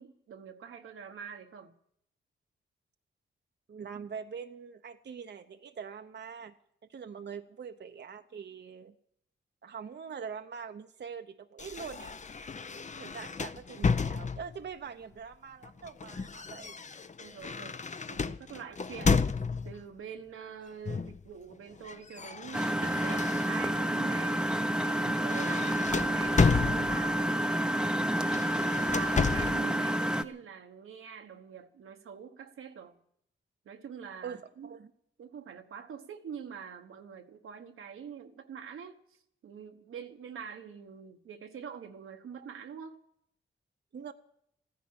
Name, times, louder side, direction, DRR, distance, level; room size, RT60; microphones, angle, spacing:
voice 1, 0.0-1.7 12.9-13.2 17.2-19.2 19.6-24.4 24.8-25.8 26.0-27.8 28.2-33.0 33.6-34.7 35.2-39.2 39.4-43.0, right 7 dB, 85° right, 1.2 m, -45 dB
voice 2, 3.7-6.5 6.9-8.9 9.6-12.1 13.0-16.8 34.2-34.9 43.9-44.1, right 6 dB, 55° right, 0.8 m, -43 dB
sound 1, 11.6-14.7 15.6-19.8 20.9-21.2 21.5-23.8 24.3-24.5 24.9-27.3 28.2-29.7, left 5 dB, 35° left, 0.7 m, -32 dB
Engine, 22.5-30.2, right 1 dB, 5° right, 0.8 m, -29 dB
14.5 x 10.5 x 8.7 m
cardioid pair, 60°, 21 cm